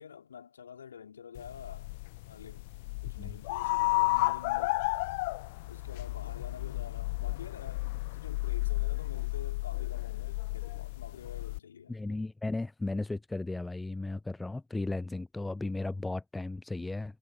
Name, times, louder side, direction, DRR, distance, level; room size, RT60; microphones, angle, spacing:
voice 1, 0.0-1.9 2.3-2.6 3.0-4.8 5.7-12.0, left 7 dB, 75° left, 4.2 m, -48 dB
sound 1, 1.4-11.6, left 24 dB, 60° left, 0.8 m, -33 dB
voice 2, 11.9-17.2, left 2 dB, 10° left, 0.4 m, -35 dB
figure-of-eight pair, 75°, 0 cm